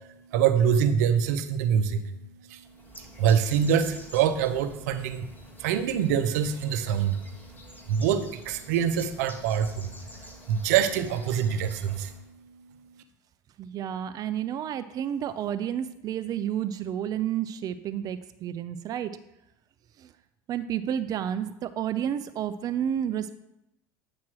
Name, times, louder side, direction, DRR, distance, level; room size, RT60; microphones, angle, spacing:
voice 1, 0.3-2.0 2.5-2.6 3.0-5.3 5.6-7.2 7.9-9.9 10.2-12.1, right 8 dB, 85° right, 9 dB, 0.6 m, -25 dB
Bird, 2.6-12.3, equal, 20° left, 1.4 m, -48 dB
voice 2, 13.6-19.2 20.0-20.1 20.5-23.4, right 10 dB, 45° right, 12 dB, 0.4 m, -31 dB
8.5 x 3.1 x 6.0 m, 0.86 s
supercardioid pair, 105°, 9 cm